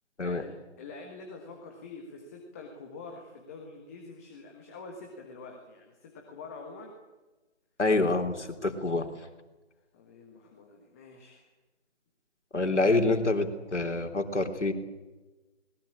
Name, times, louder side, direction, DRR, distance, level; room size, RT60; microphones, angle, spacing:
voice 1, 0.2-7.0 9.9-11.5, left 3 dB, 10° left, 2 dB, 1.5 m, -46 dB
voice 2, 7.8-9.1 12.5-14.7, left 2 dB, 70° left, 6 dB, 3.5 m, -26 dB
21.0 x 20.5 x 8.6 m, 1.2 s
figure-of-eight pair, 160°, 36 cm